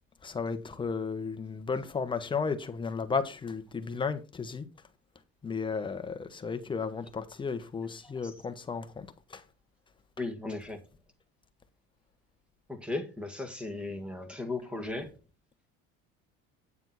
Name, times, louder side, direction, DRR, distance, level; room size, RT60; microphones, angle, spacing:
voice 1, 0.2-4.6 5.4-9.4, left 5 dB, 15° left, 1.0 m, -34 dB
voice 2, 10.2-10.8 12.7-15.2, left 2 dB, 5° right, 1.8 m, -36 dB
9.5 x 7.0 x 4.1 m
cardioid pair, 150°, 29 cm